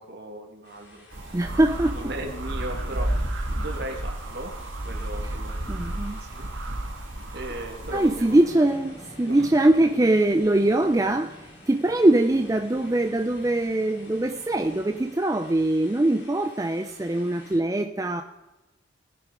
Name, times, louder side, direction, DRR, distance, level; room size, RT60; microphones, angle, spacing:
voice 1, 0.0-1.5 1.9-4.5 4.8-6.8 7.3-8.3 8.5-8.6 9.2-9.5, right 1 dB, 55° right, 2 dB, 2.1 m, -38 dB
sound 1, 0.6-17.6, left 2 dB, 60° left, 3.4 m, -52 dB
sound 2, 1.1-8.4, right 1 dB, 80° right, 1.4 m, -32 dB
voice 2, 1.3-2.0 5.7-6.2 7.9-11.4 11.7-18.2, right 1 dB, 15° right, 6 dB, 0.4 m, -22 dB
Aircraft, 8.3-15.1, equal, 20° left, 2.3 m, -48 dB
19.5 x 6.5 x 4.9 m, 1.0 s
head